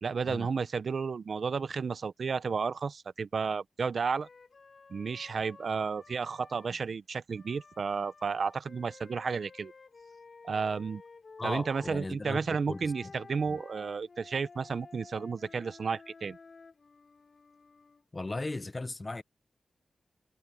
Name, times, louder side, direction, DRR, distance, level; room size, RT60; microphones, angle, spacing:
voice 1, 0.0-4.3 4.9-9.7 10.4-11.0 11.4-16.4, right 5 dB, 55° right, 0.6 m, -32 dB
Wind instrument woodwind instrument, 4.2-6.7 7.3-12.0 12.7-18.0, left 4 dB, 45° left, 5.2 m, -53 dB
voice 2, 11.4-13.1 13.5-13.6 18.1-19.2, left 2 dB, 25° left, 0.6 m, -37 dB
wide cardioid pair, 135°, 0 cm